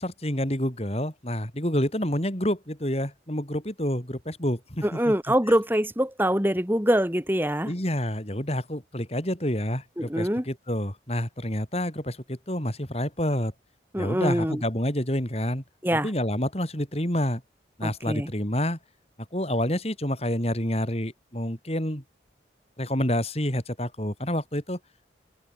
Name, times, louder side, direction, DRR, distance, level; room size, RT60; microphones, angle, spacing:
voice 1, 0.0-5.1 7.6-13.5 14.0-15.6 15.9-17.4 17.8-18.8 19.3-22.0 22.8-24.8, equal, 35° left, 5.4 m, -28 dB
voice 2, 4.8-7.7 10.0-10.4 13.9-14.6 15.8-16.1 17.8-18.3, equal, 10° right, 3.2 m, -24 dB
head